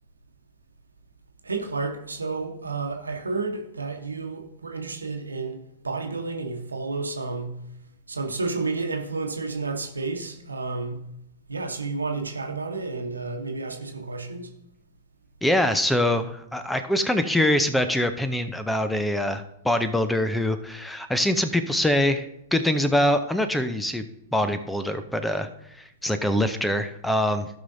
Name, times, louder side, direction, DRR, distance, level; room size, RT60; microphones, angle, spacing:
voice 1, 1.4-7.6 8.1-11.0 11.5-14.5, right 3 dB, 85° right, 1.0 m, -31 dB
voice 2, 15.4-24.0 24.3-25.5 26.0-27.5, left 1 dB, 5° left, 0.6 m, -24 dB
15.5 x 5.6 x 2.7 m
figure-of-eight pair, 105°, 0 cm